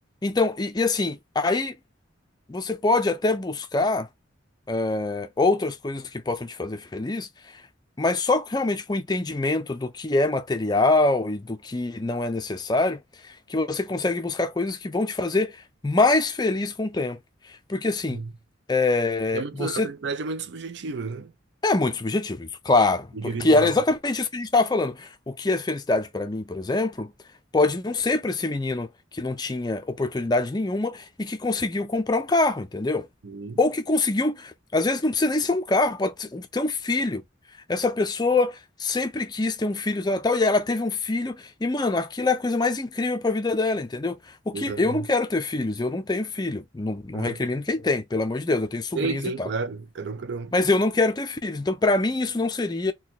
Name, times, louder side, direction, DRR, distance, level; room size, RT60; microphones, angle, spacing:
voice 1, 0.2-1.8 2.5-4.1 4.7-7.3 8.0-15.6 15.8-17.2 17.7-18.2 18.7-19.9 21.6-27.1 27.5-28.9 29.1-33.1 33.6-37.2 37.7-44.2 44.5-49.5 50.5-52.9, left 2 dB, 20° left, 0.4 m, -24 dB
voice 2, 19.3-21.3 23.1-23.7 33.2-33.6 44.5-45.1 47.1-47.4 48.9-50.5, right 4 dB, 60° right, 0.4 m, -31 dB
2.9 x 2.2 x 4.0 m
head